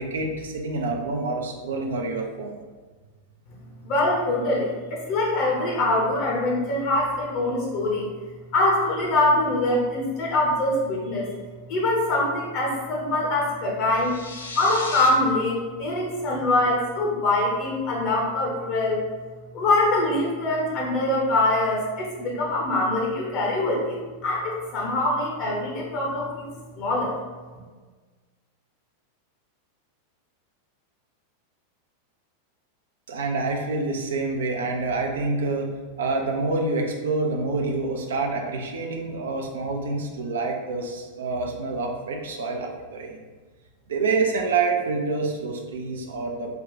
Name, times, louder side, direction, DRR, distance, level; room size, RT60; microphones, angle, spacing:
voice 1, 0.0-2.6 33.1-35.7 36.0-43.2 43.9-46.5, right 3 dB, 65° right, 2 dB, 0.5 m, -27 dB
voice 2, 3.8-8.1 8.5-11.3 11.7-14.2 14.5-19.0 19.5-27.2, left 2 dB, 40° left, -3 dB, 0.8 m, -24 dB
sound 1, 13.9-15.1, left 3 dB, 70° left, 0.5 m, -35 dB
3.4 x 2.3 x 3.8 m, 1.4 s
figure-of-eight pair, 90°, 0 cm